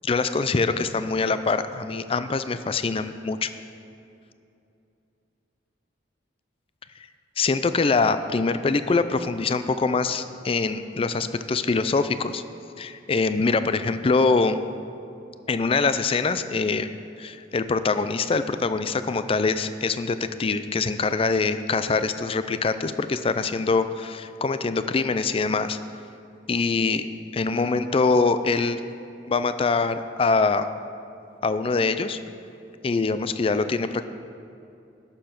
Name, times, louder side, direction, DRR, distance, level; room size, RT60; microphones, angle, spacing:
voice 1, 0.0-3.5 7.4-12.4 12.8-14.6 15.5-16.9 17.2-25.8 26.5-27.1 27.3-28.8 29.3-30.7 31.4-32.2 32.8-34.1, left 4 dB, 30° left, 11 dB, 0.4 m, -24 dB
11.5 x 6.9 x 5.8 m, 2.7 s
head